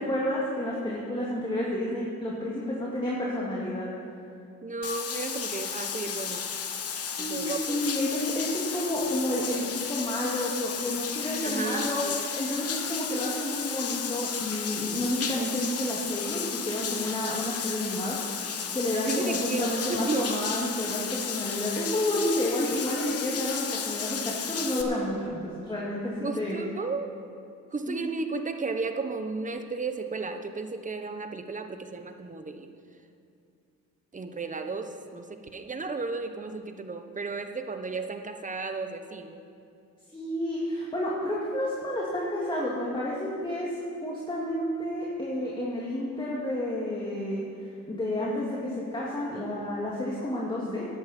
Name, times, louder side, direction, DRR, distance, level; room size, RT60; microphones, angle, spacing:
voice 1, 0.0-3.9 7.0-7.4 7.7-18.2 18.7-26.6 27.9-28.1 40.1-43.7 44.0-47.4 47.9-50.9, left 1 dB, 15° left, -5 dB, 2.4 m, -30 dB
voice 2, 4.6-6.5 7.2-7.8 11.4-12.2 19.1-20.4 26.2-27.1 27.7-32.7 34.1-39.4, right 4 dB, 25° right, 7 dB, 1.1 m, -34 dB
Bathtub (filling or washing), 4.8-24.8, left 7 dB, 50° left, 1.3 m, -33 dB
15.5 x 11.0 x 4.4 m, 2.5 s
cardioid pair, 90°, 30 cm